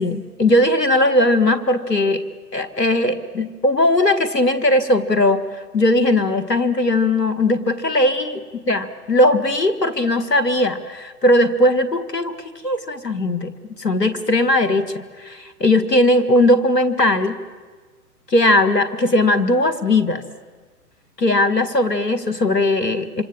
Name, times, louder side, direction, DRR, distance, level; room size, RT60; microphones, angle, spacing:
voice 1, 0.0-2.2 2.5-12.4 12.6-13.5 13.8-17.4 18.3-20.2 21.2-23.2, left 1 dB, 85° left, 12 dB, 1.8 m, -18 dB
26.5 x 25.5 x 7.3 m, 1.4 s
figure-of-eight pair, 120°, 48 cm